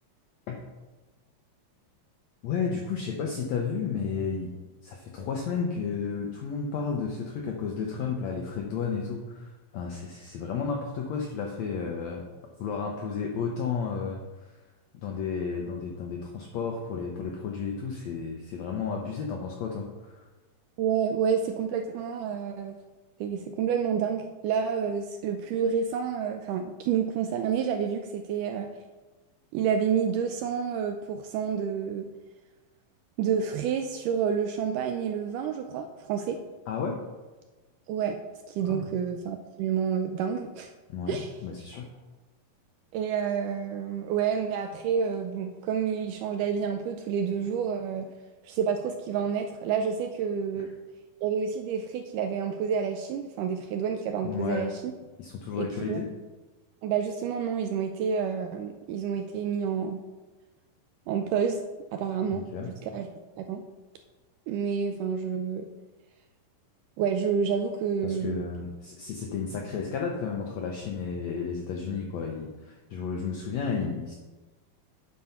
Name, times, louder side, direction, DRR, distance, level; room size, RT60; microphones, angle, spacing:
voice 1, 2.4-4.5 4.8-9.5 9.7-12.2 12.6-14.2 15.0-20.2 36.7-37.0 38.6-38.9 40.9-41.9 54.2-54.7 55.2-56.1 62.3-62.7 68.0-74.2, left 5 dB, 85° left, 1 dB, 1.5 m, -32 dB
voice 2, 20.8-22.8 23.2-28.7 29.5-32.1 33.2-36.4 37.9-38.2 38.5-40.7 41.1-41.3 42.9-48.1 48.4-50.7 51.2-54.9 55.6-56.0 56.8-60.0 61.1-61.6 61.9-62.4 62.8-63.1 63.4-63.6 64.5-65.7 67.0-68.5, right 7 dB, 80° right, 5 dB, 1.9 m, -29 dB
9.4 x 4.3 x 5.6 m, 1.2 s
omnidirectional pair, 4.1 m